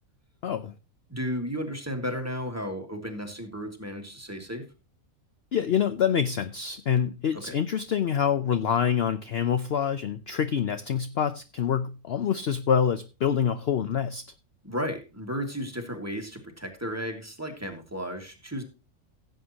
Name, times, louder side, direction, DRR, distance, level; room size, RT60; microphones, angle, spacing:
voice 1, 0.4-0.7 5.5-14.2, left 8 dB, 55° left, 11 dB, 0.8 m, -26 dB
voice 2, 1.1-4.6 7.3-7.6 14.6-18.6, equal, 10° right, 3 dB, 2.1 m, -34 dB
16.0 x 8.0 x 2.9 m, 0.31 s
omnidirectional pair, 1.5 m